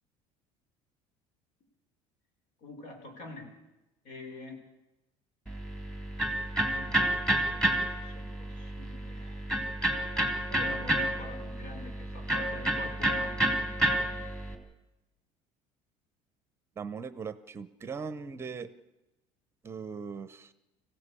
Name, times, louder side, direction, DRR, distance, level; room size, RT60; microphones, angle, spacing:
voice 1, 2.6-3.5 4.0-4.6 6.2-9.6 10.5-13.6, left 2 dB, 75° left, 4 dB, 5.1 m, -46 dB
Electric guitar, 5.5-14.5, right 1 dB, 5° left, 2.6 m, -30 dB
voice 2, 16.8-18.7 19.6-20.5, right 5 dB, 20° right, 14 dB, 0.8 m, -39 dB
25.0 x 16.0 x 8.4 m, 0.99 s
cardioid pair, 165°, 12 cm